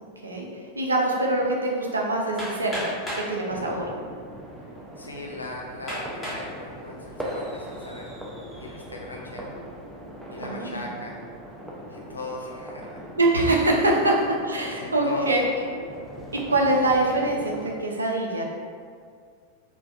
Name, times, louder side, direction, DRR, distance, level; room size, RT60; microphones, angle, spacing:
voice 1, 0.8-3.9 10.4-10.9 13.2-14.1 14.4-15.4 16.3-18.4, right 2 dB, 75° right, -1 dB, 0.3 m, -24 dB
Hammer, 2.4-3.3 4.2-4.3 4.9-5.0 5.9-6.5 7.1-7.5, equal, 15° left, 0.7 m, -33 dB
sound 1, 3.5-17.7, equal, 5° right, 0.3 m, -40 dB
voice 2, 5.0-8.2 8.6-9.5 10.3-11.2 11.9-13.0 13.8-14.0 14.7-15.3, left 1 dB, 80° left, -1 dB, 0.4 m, -38 dB
2.4 x 2.2 x 2.2 m, 2.1 s
figure-of-eight pair, 90°, 0 cm